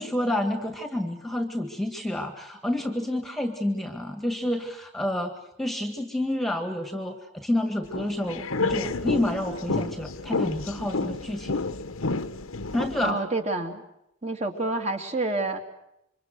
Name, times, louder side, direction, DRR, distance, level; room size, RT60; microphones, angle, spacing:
voice 1, 0.0-5.3 5.6-11.6 12.7-13.2, left 1 dB, ahead, 5 dB, 1.9 m, -29 dB
sound 1, 7.9-13.1, left 3 dB, 75° left, 1.2 m, -30 dB
voice 2, 13.0-13.8 14.2-15.6, right 2 dB, 30° right, 3 dB, 2.7 m, -28 dB
28.0 x 25.0 x 6.5 m, 0.82 s
head